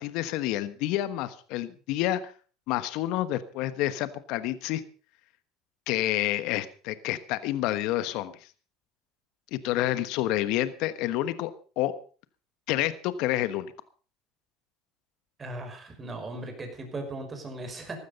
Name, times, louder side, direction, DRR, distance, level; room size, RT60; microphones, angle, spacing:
voice 1, 0.0-2.3 2.7-4.8 5.9-8.3 9.5-11.5 11.8-11.9 12.7-13.7, left 14 dB, 70° left, 14 dB, 1.2 m, -28 dB
voice 2, 15.4-18.0, right 2 dB, 25° right, 5 dB, 5.8 m, -38 dB
15.0 x 12.5 x 5.3 m, 0.39 s
supercardioid pair, 100°, 0 cm